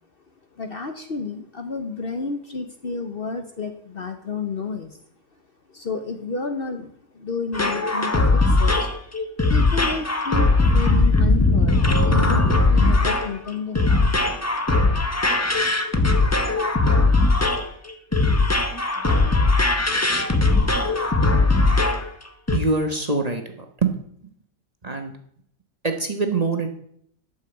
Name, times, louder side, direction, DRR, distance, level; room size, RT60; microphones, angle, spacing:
voice 1, 0.5-5.0 5.7-8.9 9.5-14.1, left 4 dB, 45° left, 6 dB, 1.0 m, -31 dB
sound 1, 7.5-22.1 22.5-22.6, left 2 dB, 15° left, 0.8 m, -19 dB
voice 2, 22.5-23.5 23.8-24.3 24.8-25.2 25.8-26.7, right 3 dB, 30° right, 4 dB, 1.3 m, -24 dB
12.0 x 5.7 x 8.0 m, 0.68 s
omnidirectional pair, 1.5 m